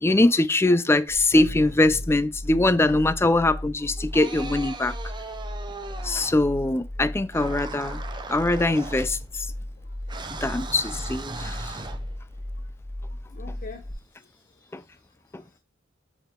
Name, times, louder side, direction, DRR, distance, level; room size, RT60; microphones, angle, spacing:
voice 1, 0.0-4.9 6.0-8.0 8.3-9.2 10.4-11.7, left 2 dB, 15° left, 0.4 m, -22 dB
sound 1, 1.1-13.9, left 1 dB, 70° left, 2.6 m, -36 dB
sound 2, 1.2-2.3 4.0-6.6 7.3-9.6 10.1-12.4, right 3 dB, 25° right, 0.7 m, -39 dB
voice 2, 10.4-10.7 13.3-13.8 14.1-14.8, left 4 dB, 45° left, 0.8 m, -45 dB
6.5 x 6.0 x 3.7 m
head